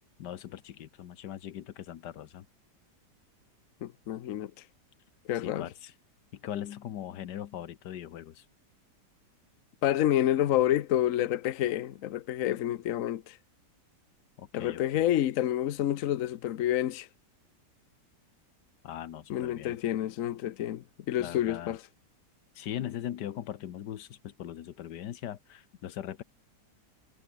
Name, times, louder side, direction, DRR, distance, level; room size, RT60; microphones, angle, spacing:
voice 1, 0.2-2.5 5.4-5.9 6.3-8.4 14.4-15.1 18.8-19.8 21.2-21.8 22.5-26.2, left 11 dB, 80° left, 1.6 m, -40 dB
voice 2, 3.8-4.5 5.3-5.7 9.8-13.4 14.5-17.1 19.3-21.8, left 12 dB, 60° left, 1.1 m, -28 dB
omnidirectional pair, 1.8 m